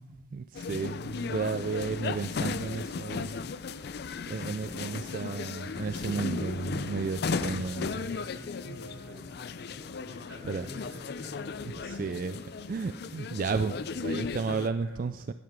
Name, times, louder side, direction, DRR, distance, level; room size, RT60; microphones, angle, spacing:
voice 1, 0.3-3.4 4.3-8.1 8.7-8.8 10.5-10.6 11.7-12.4 12.7-15.3, right 5 dB, 45° right, 11 dB, 0.3 m, -33 dB
sound 1, 0.5-14.7, left 5 dB, 55° left, 0.4 m, -36 dB
voice 2, 4.3-5.4 7.4-9.6 10.0-11.4 14.8-15.3, equal, 80° right, -2 dB, 5.0 m, -50 dB
sound 2, 6.7-13.2, equal, 10° right, 4.0 m, -52 dB
12.0 x 11.0 x 3.7 m, 0.86 s
head